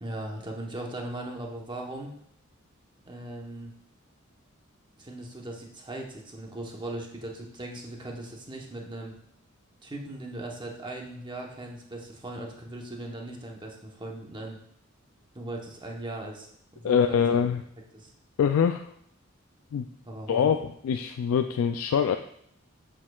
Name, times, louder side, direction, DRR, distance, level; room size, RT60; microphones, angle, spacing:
voice 1, 0.0-2.1 3.0-3.7 5.0-9.2 9.8-14.6 15.3-17.4 17.9-18.1 20.1-20.5, right 1 dB, 20° right, 0 dB, 0.9 m, -38 dB
voice 2, 16.8-17.6 18.4-18.9 19.7-19.9 20.3-20.6 20.8-22.2, left 7 dB, 75° left, 7 dB, 0.3 m, -24 dB
7.4 x 6.2 x 2.3 m, 0.69 s
head